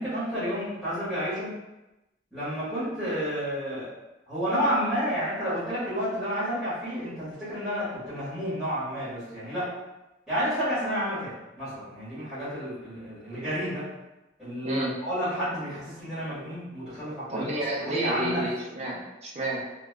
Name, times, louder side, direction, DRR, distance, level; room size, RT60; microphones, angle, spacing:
voice 1, 0.0-1.5 2.3-3.9 4.3-9.7 10.3-13.9 14.4-17.5 17.8-18.4, equal, ahead, -15 dB, 1.4 m, -30 dB
voice 2, 14.6-15.0 17.3-19.6, right 1 dB, 35° right, -3 dB, 0.5 m, -31 dB
3.3 x 2.2 x 2.2 m, 0.98 s
head